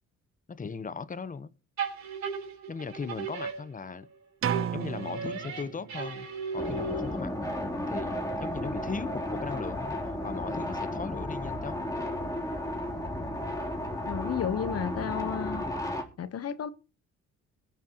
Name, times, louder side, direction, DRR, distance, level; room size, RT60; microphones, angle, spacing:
voice 1, 0.5-1.5 2.7-4.1 4.7-7.5 7.9-10.0 10.2-11.9, left 5 dB, 25° left, 1.0 m, -38 dB
sound 1, 1.8-4.1 4.5-7.3, right 4 dB, 65° right, 4.2 m, -36 dB
sound 2, 4.4-6.3, right 9 dB, 45° right, 0.7 m, -33 dB
sound 3, 6.6-16.0, left 1 dB, 10° left, 3.4 m, -33 dB
voice 2, 14.1-15.6 16.2-16.7, left 8 dB, 55° left, 1.1 m, -32 dB
22.0 x 9.3 x 3.0 m
cardioid pair, 90°, 30 cm